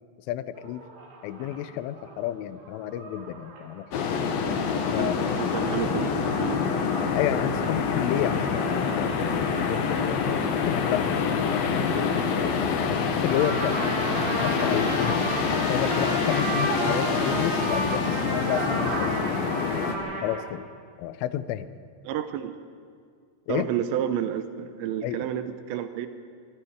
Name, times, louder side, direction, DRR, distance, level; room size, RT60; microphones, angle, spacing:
voice 1, 0.3-0.8 1.2-4.4 4.9-5.3 7.1-12.5 12.9-13.9 14.4-19.6 20.2-20.7 21.0-21.7 23.5-23.7 25.0-25.2, left 12 dB, 85° left, 14 dB, 3.2 m, -31 dB
sound 1, 0.6-13.3 13.8-19.1, right 4 dB, 60° right, 3.9 m, -41 dB
sound 2, 3.9-20.0, left 5 dB, 60° left, 2.8 m, -26 dB
voice 2, 5.4-6.6 22.0-22.5 23.5-26.1, right 10 dB, 80° right, 10 dB, 2.8 m, -30 dB
Trumpet, 13.2-20.5, right 1 dB, 35° right, 4.6 m, -32 dB
25.5 x 23.5 x 4.7 m, 2.2 s
omnidirectional pair, 5.5 m